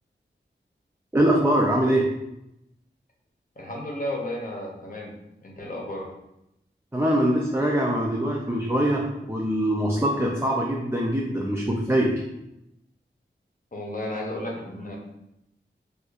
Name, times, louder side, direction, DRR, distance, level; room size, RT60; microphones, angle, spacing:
voice 1, 1.1-2.1 6.9-12.2, right 1 dB, 15° right, -2 dB, 0.5 m, -23 dB
voice 2, 3.6-5.1 5.4-6.1 13.7-15.0, left 1 dB, 45° left, -2 dB, 0.9 m, -33 dB
4.2 x 2.4 x 2.4 m, 0.85 s
wide cardioid pair, 70°, 20 cm